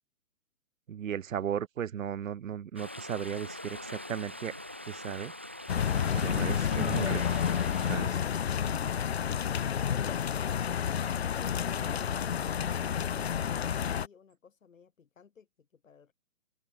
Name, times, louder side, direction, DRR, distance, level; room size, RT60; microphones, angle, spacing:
voice 1, 0.9-4.5 4.8-5.3 6.1-7.4 7.9-8.2, right 9 dB, 70° right, 0.9 m, -36 dB
Stream, 2.8-8.0, left 1 dB, 10° right, 0.5 m, -43 dB
sound 1, 5.7-14.1, left 8 dB, 50° left, 1.4 m, -30 dB
voice 2, 11.2-16.1, left 6 dB, 70° left, 6.6 m, -57 dB
open air
hypercardioid pair, 170°, 41 cm